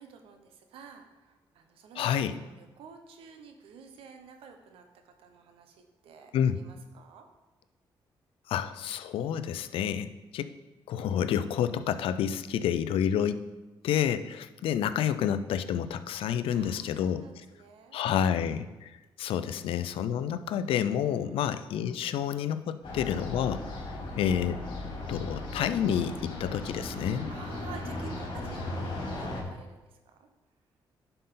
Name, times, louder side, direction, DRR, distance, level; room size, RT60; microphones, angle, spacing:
voice 1, 0.0-7.3 16.5-18.0 19.5-19.6 21.1-21.4 27.3-30.3, right 6 dB, 85° right, 5 dB, 1.0 m, -51 dB
voice 2, 2.0-2.3 6.3-6.6 8.5-10.5 10.9-13.5 13.8-17.2 17.9-18.9 19.2-23.6 24.2-24.6 25.1-27.3, left 9 dB, 80° left, 12 dB, 0.5 m, -29 dB
sound 1, 22.8-29.4, left 2 dB, 65° left, 2.7 m, -37 dB
10.5 x 5.6 x 3.8 m, 1.1 s
cardioid pair, 90°, 9 cm